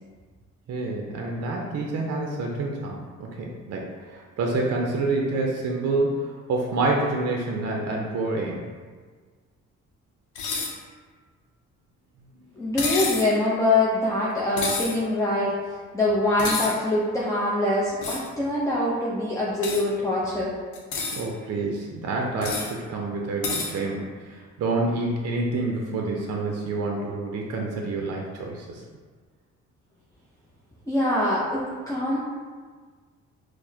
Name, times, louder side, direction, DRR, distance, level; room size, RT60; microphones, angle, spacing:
voice 1, 0.7-8.7 21.1-28.8, right 2 dB, 55° right, 0 dB, 0.5 m, -28 dB
sound 1, 10.4-10.7 12.8-13.3 14.6-15.0 16.4-16.7 18.0-18.3 19.6-19.8 20.7-21.2 22.4-22.7 23.4-23.7, left 4 dB, 80° left, 0.7 m, -28 dB
voice 2, 12.6-15.5 15.9-20.5 30.9-32.2, left 2 dB, 10° left, -7 dB, 0.5 m, -24 dB
4.6 x 2.1 x 2.7 m, 1.5 s
cardioid pair, 90°, 30 cm